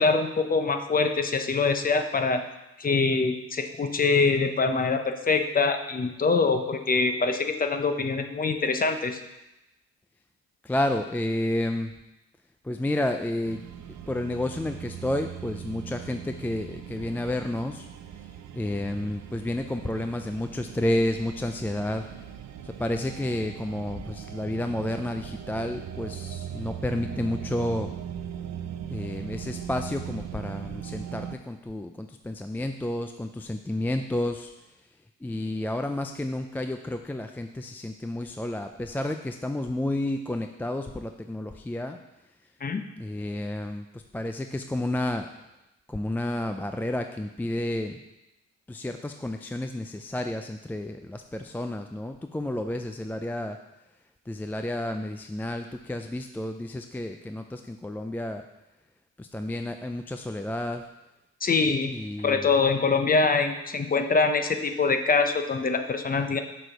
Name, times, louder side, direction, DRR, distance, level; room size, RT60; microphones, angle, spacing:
voice 1, 0.0-2.5 2.8-9.2 42.6-42.8 61.4-61.9 62.2-66.4, left 4 dB, 30° left, 7 dB, 0.8 m, -24 dB
voice 2, 10.6-11.9 12.6-13.7 14.1-22.3 22.6-27.9 28.9-34.5 35.2-42.0 43.0-45.3 45.9-48.0 48.7-53.6 54.3-58.4 59.2-60.8 61.6-62.5, left 1 dB, 5° left, 6 dB, 0.3 m, -31 dB
sound 1, 13.4-31.4, right 9 dB, 65° right, 0.7 m, -39 dB
6.2 x 4.7 x 6.6 m, 0.95 s
cardioid pair, 90°, 30 cm